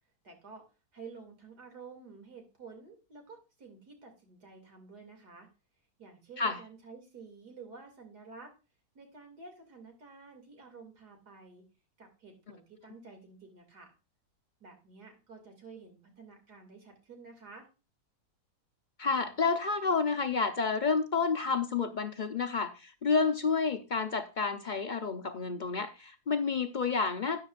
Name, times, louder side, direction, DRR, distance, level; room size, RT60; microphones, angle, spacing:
voice 1, 0.2-0.6 0.9-5.5 6.0-8.5 8.9-11.6 12.0-13.9 14.6-17.7, right 4 dB, 80° right, 4 dB, 3.2 m, -51 dB
voice 2, 19.0-27.5, left 5 dB, 45° left, 8 dB, 0.6 m, -30 dB
13.0 x 9.1 x 2.5 m, 0.29 s
omnidirectional pair, 1.7 m